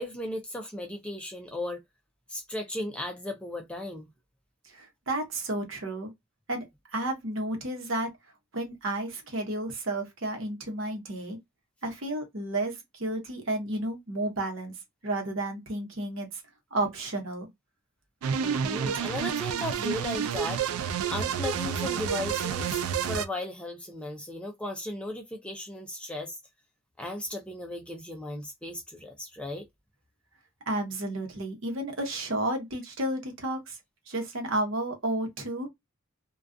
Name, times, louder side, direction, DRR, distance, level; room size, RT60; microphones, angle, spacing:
voice 1, 0.0-1.8 2.3-4.1 18.4-20.7 21.1-26.4 27.0-29.7, left 1 dB, 5° left, 0.4 m, -36 dB
voice 2, 4.6-6.1 6.5-6.6 6.9-8.1 8.5-11.4 11.8-14.7 15.0-16.4 16.7-17.5 30.7-33.8 34.1-35.7, right 1 dB, 60° right, 0.9 m, -32 dB
sound 1, 18.2-23.3, right 7 dB, 85° right, 0.3 m, -29 dB
2.3 x 2.3 x 2.4 m
head